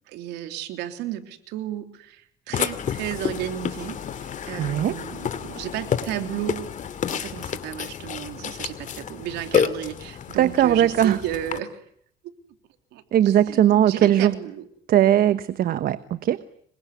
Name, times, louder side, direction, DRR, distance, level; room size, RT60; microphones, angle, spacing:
voice 1, 0.1-6.7 7.1-11.8 12.9-14.6, right 12 dB, 90° right, 8 dB, 3.3 m, -33 dB
Burping eructation, 2.5-11.6, left 8 dB, 50° left, 2.4 m, -30 dB
voice 2, 4.6-5.0 10.4-11.2 13.1-14.3 14.9-16.4, right 11 dB, 60° right, 13 dB, 1.2 m, -19 dB
27.0 x 23.0 x 9.4 m, 0.67 s
cardioid pair, 110°, 17 cm